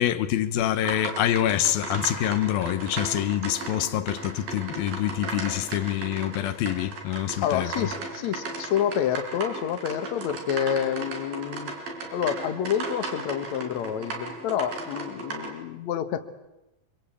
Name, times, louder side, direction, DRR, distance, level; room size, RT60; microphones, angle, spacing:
voice 1, 0.0-7.9, left 12 dB, 85° left, 2.9 m, -26 dB
sound 1, 0.8-15.5, right 3 dB, 75° right, 6.0 m, -36 dB
voice 2, 7.4-11.8 12.1-16.3, left 9 dB, 60° left, 2.5 m, -28 dB
26.5 x 25.0 x 8.6 m
omnidirectional pair, 4.1 m